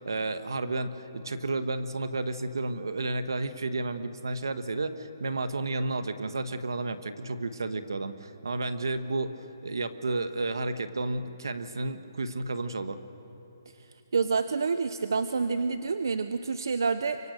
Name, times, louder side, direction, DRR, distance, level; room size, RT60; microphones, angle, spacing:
voice 1, 0.0-13.0, right 2 dB, 90° right, 10 dB, 1.4 m, -32 dB
voice 2, 14.1-17.2, right 4 dB, 75° right, 11 dB, 0.8 m, -28 dB
25.0 x 24.0 x 6.7 m, 3.0 s
hypercardioid pair, 165°, 2 cm